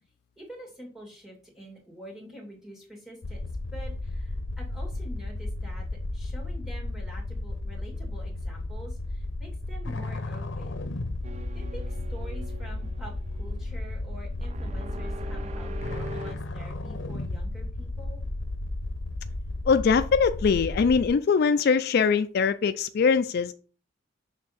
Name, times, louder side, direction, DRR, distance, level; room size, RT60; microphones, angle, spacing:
voice 1, 0.4-5.9 6.1-10.7 11.5-18.2, right 1 dB, ahead, -3 dB, 2.3 m, -46 dB
sound 1, 3.2-21.1, left 2 dB, 85° left, 0.7 m, -34 dB
sound 2, 11.2-16.3, right 1 dB, 35° right, 0.5 m, -42 dB
voice 2, 19.7-23.5, left 5 dB, 55° left, 11 dB, 0.3 m, -22 dB
6.4 x 3.4 x 5.0 m, 0.38 s
head